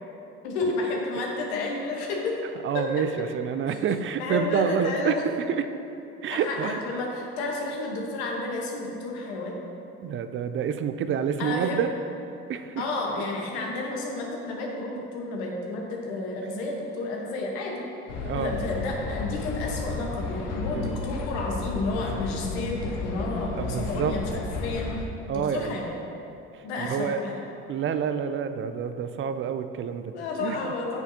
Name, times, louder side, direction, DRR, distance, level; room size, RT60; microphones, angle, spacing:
voice 1, 0.4-2.4 2.7-3.0 3.7-3.8 4.2-5.2 6.3-9.6 11.4-11.8 12.8-24.9 25.5-26.0 26.6-27.4 30.1-31.0, left 2 dB, 85° left, 0 dB, 1.2 m, -31 dB
voice 2, 2.6-5.7 6.2-6.8 10.0-11.9 12.5-12.8 18.3-18.5 20.7-20.9 23.5-24.2 25.3-25.8 26.5-27.2 27.7-30.1 30.4-30.7, right 7 dB, 40° right, 9 dB, 0.4 m, -28 dB
sound 1, 18.1-25.0, left 4 dB, 70° left, 0.9 m, -33 dB
7.9 x 7.1 x 2.8 m, 2.8 s
supercardioid pair, 75°, 32 cm